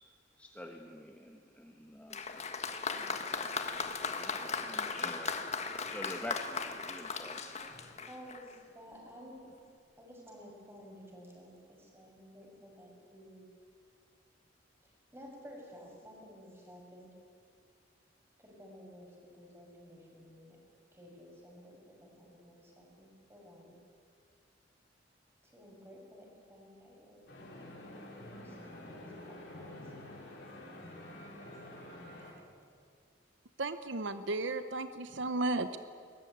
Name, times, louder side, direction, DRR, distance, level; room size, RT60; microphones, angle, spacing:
voice 1, 0.4-2.2 2.9-3.5 4.1-5.4 5.9-7.6, left 1 dB, 10° left, 2 dB, 1.2 m, -47 dB
Applause, 2.1-8.6 9.5-9.6, left 5 dB, 35° left, 1.5 m, -37 dB
voice 2, 7.7-9.4 10.0-13.5 14.8-17.2 18.4-20.6 20.9-23.7 25.4-27.6 28.0-29.9, equal, 15° right, -1 dB, 6.3 m, -53 dB
sound 1, 27.3-32.3, left 1 dB, 65° left, 6.1 m, -48 dB
voice 3, 33.6-35.8, right 2 dB, 70° right, 11 dB, 0.8 m, -34 dB
22.0 x 20.0 x 9.4 m, 2.1 s
head